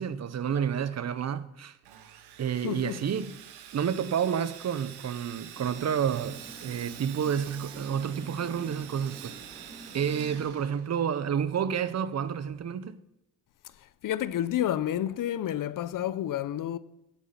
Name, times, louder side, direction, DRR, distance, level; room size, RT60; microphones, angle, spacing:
voice 1, 0.0-1.8 2.4-3.3 3.7-9.4 9.9-13.0, right 8 dB, 40° right, 0.9 m, -30 dB
Sawing, 1.8-11.3, right 10 dB, 80° right, 1.6 m, -47 dB
voice 2, 2.6-3.0 14.0-16.8, left 11 dB, 55° left, 0.7 m, -30 dB
sound 1, 5.5-10.5, right 2 dB, 15° right, 2.7 m, -49 dB
16.5 x 9.0 x 5.9 m
cardioid pair, 95°, 39 cm